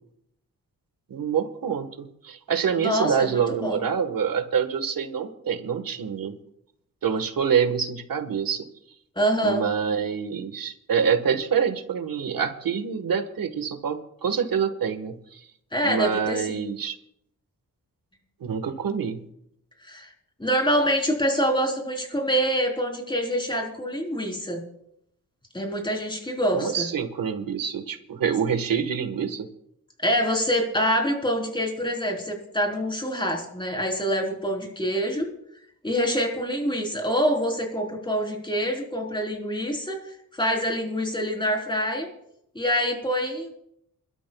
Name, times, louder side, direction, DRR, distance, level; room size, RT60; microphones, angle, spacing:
voice 1, 1.1-6.3 7.0-8.7 9.4-15.4 15.8-17.0 18.4-19.2 26.5-29.5, right 7 dB, 75° right, 8 dB, 1.6 m, -26 dB
voice 2, 2.8-3.8 9.2-9.6 15.7-16.6 19.8-20.1 20.4-24.6 25.5-26.9 30.0-35.3 35.8-42.1 42.5-43.5, equal, 15° left, 1 dB, 4.0 m, -26 dB
27.5 x 12.5 x 2.4 m, 0.77 s
cardioid pair, 85°, 35 cm